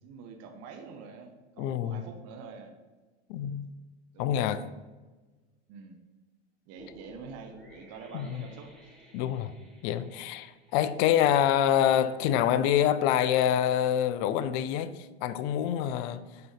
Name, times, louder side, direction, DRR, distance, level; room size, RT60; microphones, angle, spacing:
voice 1, 0.0-2.7 4.1-4.7 5.7-6.0 6.7-9.0 9.2-9.3, right 5 dB, 45° right, 1.0 m, -46 dB
voice 2, 1.6-2.0 3.3-3.6 4.2-4.6 8.1-8.4 9.1-9.5 9.8-16.2, left 10 dB, 50° left, 0.5 m, -26 dB
sound 1, 6.8-12.0, equal, ahead, 1.6 m, -55 dB
6.7 x 4.1 x 5.0 m
hypercardioid pair, 110°, 34 cm